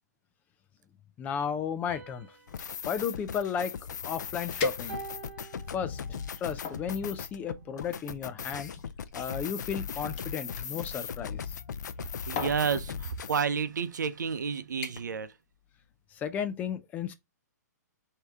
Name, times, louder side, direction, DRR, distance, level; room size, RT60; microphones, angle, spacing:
voice 1, 1.2-2.3 2.9-3.7 4.0-5.0 5.7-6.0 6.4-8.7 9.1-11.4 16.1-17.1, left 7 dB, 15° left, 0.4 m, -34 dB
sound 1, 1.9-4.3 4.9-6.4, right 3 dB, 35° right, 1.8 m, -48 dB
sound 2, 2.5-13.4, left 7 dB, 75° left, 0.5 m, -38 dB
sound 3, 4.6-5.4 6.0-6.8 7.8-10.7 11.8-12.0 12.3-12.7 13.5-13.7 14.1-14.4 14.8-15.2 15.5-15.9 16.3-16.4, left 4 dB, 35° left, 1.0 m, -38 dB
voice 2, 12.2-15.3, right 6 dB, 80° right, 0.7 m, -30 dB
4.7 x 2.8 x 3.5 m
hypercardioid pair, 145°, 10 cm